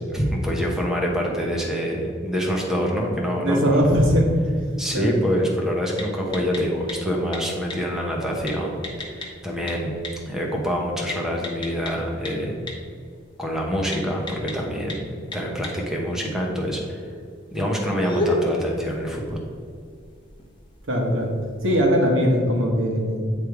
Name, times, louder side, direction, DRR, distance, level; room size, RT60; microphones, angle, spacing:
voice 1, 0.1-3.9 4.8-8.8 9.1-9.9 10.3-12.5 13.4-15.0 15.3-17.0 17.5-19.4, equal, 5° right, -2 dB, 0.9 m, -26 dB
voice 2, 3.4-4.3 4.9-5.1 20.9-21.3 21.6-23.3, equal, 85° right, 1 dB, 1.3 m, -20 dB
sound 1, 3.6-21.9, left 1 dB, 25° left, 1.1 m, -36 dB
8.6 x 3.4 x 4.7 m, 2.2 s
head